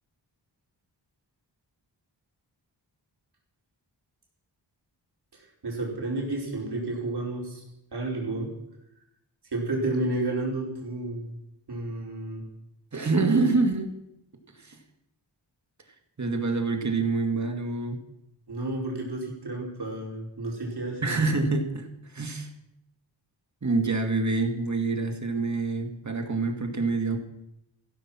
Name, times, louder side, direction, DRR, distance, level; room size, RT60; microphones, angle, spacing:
voice 1, 5.3-7.6 7.9-8.5 9.5-11.3 11.7-12.4 18.5-21.2, right 2 dB, 60° right, -2 dB, 5.2 m, -31 dB
voice 2, 12.9-13.9 14.6-14.8 16.2-18.0 21.0-21.9 22.1-22.5 23.6-27.2, right 3 dB, 40° right, 5 dB, 2.4 m, -26 dB
15.5 x 13.5 x 6.0 m, 0.81 s
wide cardioid pair, 105°, 43 cm